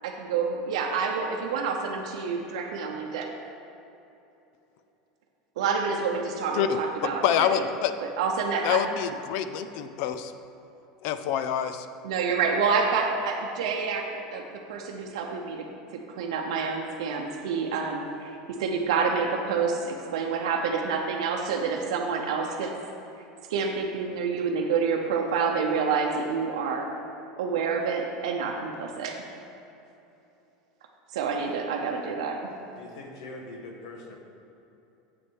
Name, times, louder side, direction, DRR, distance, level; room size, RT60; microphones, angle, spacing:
voice 1, 0.0-3.3 5.6-7.7 8.0-8.9 12.0-14.4 14.7-15.6 16.1-18.3 18.6-22.7 23.5-26.9 27.4-29.2 31.1-32.5, right 5 dB, 85° right, 1 dB, 0.7 m, -28 dB
voice 2, 7.0-7.9 8.6-10.3 11.0-11.9, left 9 dB, 50° left, 11 dB, 0.4 m, -26 dB
voice 3, 32.8-34.2, left 2 dB, 80° left, 2 dB, 1.3 m, -42 dB
7.9 x 6.1 x 4.6 m, 2.9 s
supercardioid pair, 170°, 3 cm